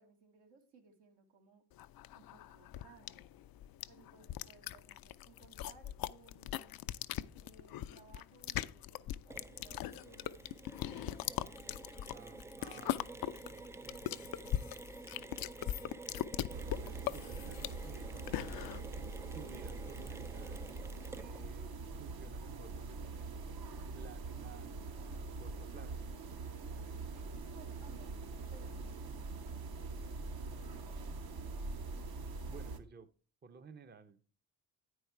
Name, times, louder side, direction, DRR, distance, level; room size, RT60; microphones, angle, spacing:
voice 1, 0.0-1.7 2.2-3.3 3.9-6.7 7.4-10.4 11.6-12.6 13.8-13.9 27.1-28.1 28.5-29.4 30.7-30.9, right 5 dB, 75° right, 3 dB, 1.8 m, -62 dB
sound 1, 1.8-18.8, left 13 dB, 60° left, 0.5 m, -40 dB
Mechanisms, 9.3-21.6, right 2 dB, 5° right, 0.3 m, -51 dB
voice 2, 12.1-13.2 13.5-14.3 16.3-18.7 19.3-20.7 21.2-23.5 23.9-26.0 32.5-33.1 33.4-34.2, right 5 dB, 25° right, 10 dB, 0.7 m, -55 dB
sound 2, 16.5-32.8, right 3 dB, 60° right, 1.1 m, -43 dB
9.3 x 4.7 x 4.4 m, 0.38 s
supercardioid pair, 55°, 42 cm